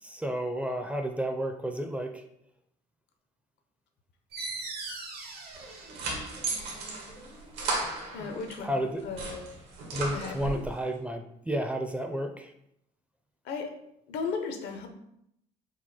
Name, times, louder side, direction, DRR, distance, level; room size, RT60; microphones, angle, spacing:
voice 1, 0.0-2.2 8.2-8.3 8.6-9.0 9.9-12.5, right 1 dB, 10° right, 5 dB, 0.4 m, -32 dB
sound 1, 4.3-9.6, right 3 dB, 70° right, 1.0 m, -43 dB
sound 2, 5.6-8.6 9.0-10.7, right 3 dB, 90° right, 1.3 m, -35 dB
voice 2, 8.1-8.8 9.0-9.4 10.1-10.6 13.4-13.8 14.1-14.9, left 5 dB, 80° left, 5 dB, 0.7 m, -35 dB
4.7 x 2.1 x 4.1 m, 0.77 s
cardioid pair, 110°, 17 cm